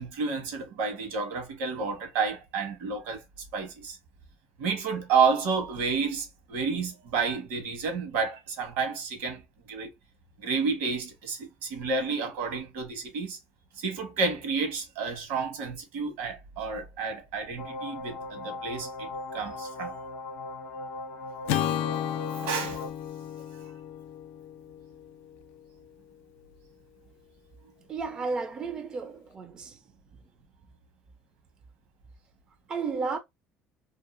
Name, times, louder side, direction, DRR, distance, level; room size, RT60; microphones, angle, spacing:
voice 1, 0.0-3.2 3.5-4.0 4.6-9.4 9.7-9.9 10.4-13.4 13.8-20.0 22.3-22.8, right 5 dB, 80° right, 1.2 m, -30 dB
sound 1, 17.6-22.9, left 2 dB, 40° left, 0.6 m, -38 dB
Acoustic guitar / Strum, 21.5-25.9, left 10 dB, 90° left, 0.4 m, -33 dB
voice 2, 27.9-29.8 32.7-33.2, right 4 dB, 25° right, 0.4 m, -33 dB
2.7 x 2.6 x 2.4 m
cardioid pair, 155°, 3 cm